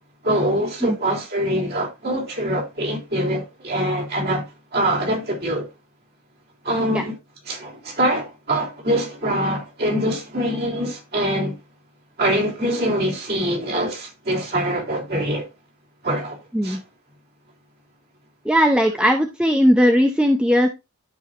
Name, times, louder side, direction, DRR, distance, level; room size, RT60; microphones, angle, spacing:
voice 1, 0.2-5.7 6.6-7.2 7.5-11.6 12.2-15.5 16.0-16.4 16.6-16.8, right 1 dB, 45° right, 3.2 m, -24 dB
voice 2, 18.4-20.7, equal, 5° right, 0.7 m, -18 dB
13.0 x 4.8 x 2.5 m
head